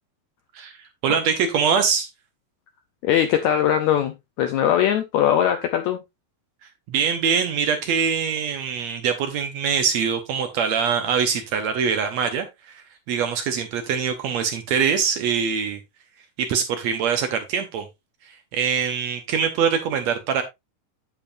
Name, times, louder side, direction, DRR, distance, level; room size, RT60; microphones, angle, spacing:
voice 1, 1.0-2.1 6.9-15.8 16.4-17.9 18.3-20.4, right 6 dB, 70° right, 1.8 m, -23 dB
voice 2, 3.0-6.0, left 10 dB, 90° left, 1.6 m, -21 dB
8.8 x 7.5 x 2.6 m
omnidirectional pair, 4.0 m